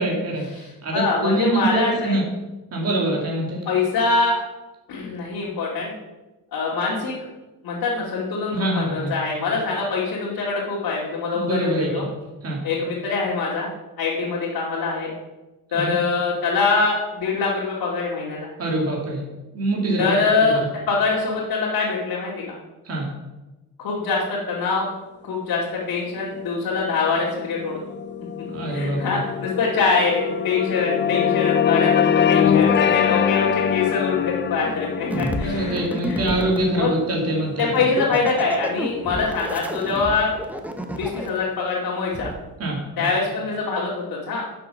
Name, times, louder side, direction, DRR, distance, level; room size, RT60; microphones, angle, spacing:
voice 1, 0.0-2.2 2.7-3.6 8.5-9.1 11.3-12.0 12.4-12.6 15.7-15.9 18.6-19.2 19.5-20.1 20.5-20.6 22.8-23.1 28.5-29.2 35.4-37.7 42.6-43.1, right 1 dB, 40° right, -2 dB, 2.8 m, -24 dB
voice 2, 0.9-2.2 3.7-4.4 4.9-5.9 6.5-7.3 7.6-12.0 12.6-13.7 14.0-15.1 15.7-18.5 20.0-22.3 23.8-24.9 25.2-27.8 28.7-35.8 36.1-36.2 36.7-36.9 37.6-40.3 40.9-42.3 43.0-44.5, left 4 dB, 85° left, -5 dB, 2.5 m, -24 dB
sound 1, 26.6-39.2, left 8 dB, 30° left, 0.4 m, -24 dB
sound 2, 35.1-36.6 37.6-41.4 42.1-42.3, equal, 5° right, 0.8 m, -29 dB
11.5 x 6.8 x 5.7 m, 1.1 s
cardioid pair, 155°, 36 cm